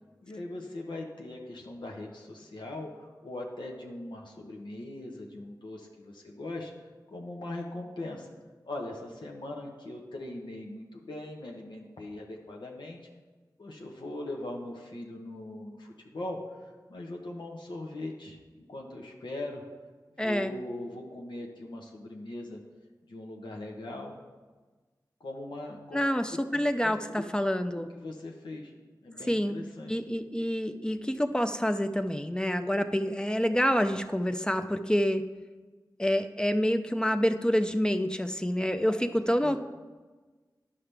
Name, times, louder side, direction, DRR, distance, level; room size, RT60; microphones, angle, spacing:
voice 1, 0.2-6.7 7.1-8.3 8.6-13.0 13.6-19.6 20.2-22.6 23.0-24.2 25.2-26.0 26.5-26.9 28.0-28.7 29.0-29.9 38.8-38.9 39.4-39.6, left 1 dB, 90° left, -1 dB, 1.0 m, -40 dB
voice 2, 20.2-20.5 25.9-27.9 29.2-29.5 29.9-35.2 36.0-39.6, equal, 10° left, 8 dB, 0.4 m, -27 dB
11.0 x 5.8 x 3.3 m, 1.3 s
wide cardioid pair, 65°, 8 cm